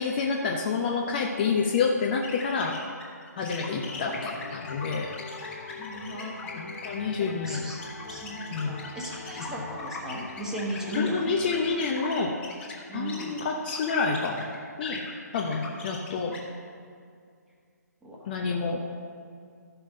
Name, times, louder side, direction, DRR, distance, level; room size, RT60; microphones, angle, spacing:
voice 1, 0.0-2.8 3.4-5.1 6.5-7.7 8.5-8.8 11.0-12.3 12.9-14.5 14.8-16.4 18.3-18.8, left 5 dB, 30° left, 1 dB, 0.7 m, -28 dB
sound 1, 2.1-14.5 14.8-16.4, left 3 dB, 10° left, 1.5 m, -41 dB
sound 2, 3.6-12.5, left 3 dB, 50° left, 1.3 m, -43 dB
voice 2, 5.8-6.5 7.2-11.3 12.9-13.4 15.7-16.6 18.0-18.8, equal, 5° right, -3 dB, 1.3 m, -37 dB
13.5 x 5.7 x 5.3 m, 2.2 s
figure-of-eight pair, 140°, 10 cm